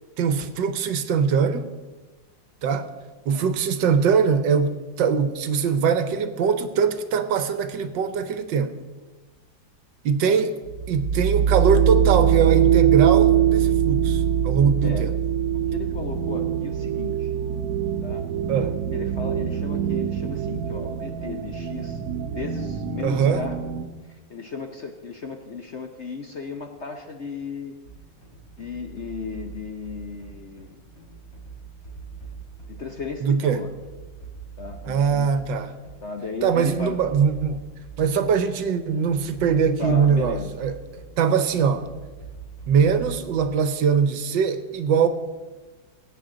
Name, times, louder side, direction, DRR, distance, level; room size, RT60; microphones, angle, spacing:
voice 1, 0.2-1.7 2.6-2.9 3.3-8.7 10.0-10.6 10.9-15.1 18.5-18.8 23.0-23.4 33.2-33.6 34.8-35.7 36.4-37.6 38.0-40.8 41.2-41.9 42.7-45.1, right 6 dB, 75° right, 10 dB, 1.5 m, -22 dB
sound 1, 10.7-23.8, right 9 dB, 60° right, 1.2 m, -23 dB
voice 2, 14.8-15.1 15.5-17.3 18.0-18.3 18.9-22.0 22.3-23.6 24.1-27.7 28.6-30.8 32.7-33.7 34.6-35.3 36.0-37.1 39.8-40.6 41.2-41.4, left 4 dB, 55° left, 4 dB, 0.8 m, -35 dB
sound 2, 27.8-43.8, right 5 dB, 35° left, 3.4 m, -43 dB
20.0 x 9.2 x 3.8 m, 1.3 s
omnidirectional pair, 2.0 m